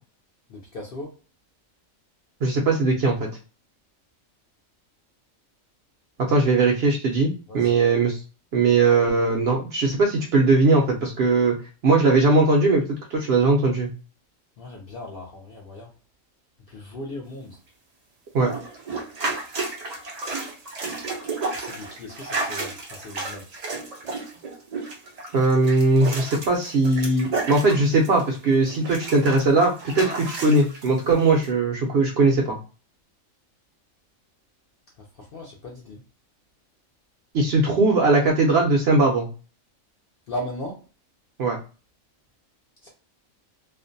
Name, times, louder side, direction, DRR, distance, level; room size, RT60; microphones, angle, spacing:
voice 1, 0.5-1.1 7.5-7.7 14.6-15.9 16.7-17.6 21.5-23.5 35.0-36.0 40.3-40.8 42.8-42.9, left 1 dB, 60° left, -2 dB, 0.6 m, -37 dB
voice 2, 2.4-3.3 6.3-8.2 8.5-11.6 11.8-12.8 13.1-13.9 18.3-18.5 25.3-32.6 37.3-39.3 41.4-41.6, right 3 dB, 60° right, 0 dB, 0.7 m, -20 dB
sound 1, 18.4-28.4 28.7-30.9 31.4-31.5, right 3 dB, 85° right, 0.3 m, -32 dB
2.5 x 2.1 x 2.5 m, 0.34 s
omnidirectional pair, 1.4 m